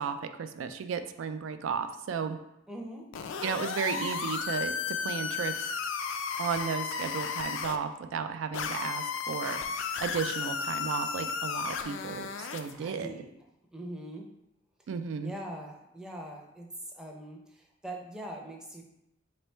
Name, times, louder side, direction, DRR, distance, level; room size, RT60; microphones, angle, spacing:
voice 1, 0.0-2.4 3.4-5.7 6.4-13.1 14.9-15.3, right 6 dB, 90° right, 9 dB, 0.3 m, -34 dB
voice 2, 2.7-3.1 12.7-13.3 13.7-14.3 15.2-18.8, right 1 dB, 5° right, 0 dB, 0.5 m, -42 dB
sound 1, 3.1-7.8 8.5-12.7, left 6 dB, 80° left, 0.3 m, -34 dB
3.2 x 3.0 x 4.3 m, 0.85 s
head